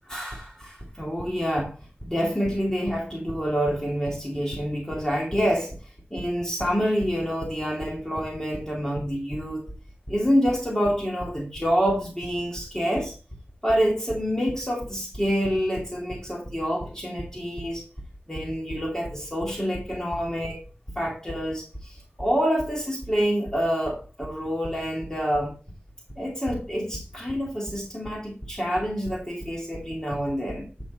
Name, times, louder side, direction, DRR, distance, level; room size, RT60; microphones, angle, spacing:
voice 1, 0.1-1.7 2.0-5.7 6.1-9.6 10.1-13.2 13.6-17.8 18.3-20.6 21.0-25.5 26.2-30.7, equal, 15° left, 2.4 m, -27 dB
9.6 x 5.4 x 4.1 m
wide cardioid pair, 50°, 4 cm